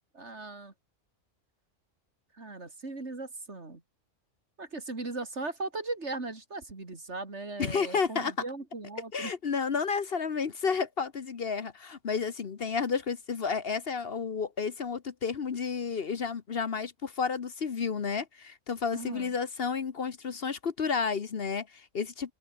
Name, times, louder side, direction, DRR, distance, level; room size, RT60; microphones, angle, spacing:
voice 1, 0.1-0.7 2.3-3.8 4.6-9.3 18.9-19.4, right 3 dB, 65° right, 3.7 m, -38 dB
voice 2, 7.6-8.3 9.1-22.3, left 5 dB, 55° left, 1.2 m, -31 dB
omnidirectional pair, 1.3 m